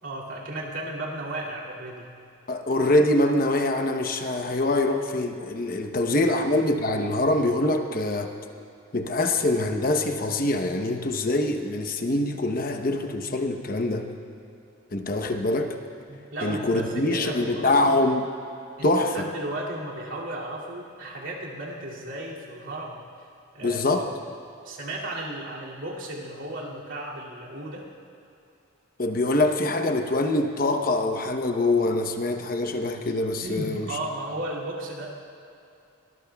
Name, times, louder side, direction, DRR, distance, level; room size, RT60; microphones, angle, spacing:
voice 1, 0.0-2.1 6.2-6.4 16.1-18.1 18.8-23.0 23.5-23.8 24.6-27.9 33.4-35.1, right 1 dB, 70° right, -4 dB, 2.5 m, -35 dB
voice 2, 2.5-8.3 8.9-14.1 14.9-15.8 16.4-18.3 18.8-19.3 23.6-24.1 29.0-34.0, left 2 dB, 45° left, 5 dB, 0.8 m, -24 dB
23.0 x 19.5 x 2.3 m, 2.7 s
head